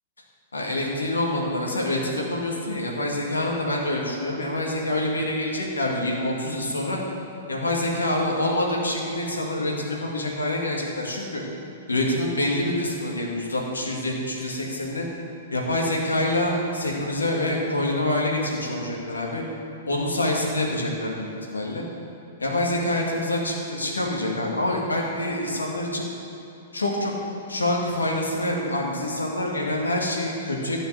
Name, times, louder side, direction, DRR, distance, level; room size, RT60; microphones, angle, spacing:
voice 1, 0.5-7.0 7.5-11.4 11.9-15.1 15.5-19.4 19.9-21.8 22.4-26.1 26.7-27.1 27.5-30.8, left 1 dB, 80° left, -1 dB, 2.2 m, -26 dB
14.0 x 5.6 x 7.7 m, 3.0 s
figure-of-eight pair, 110°, 0 cm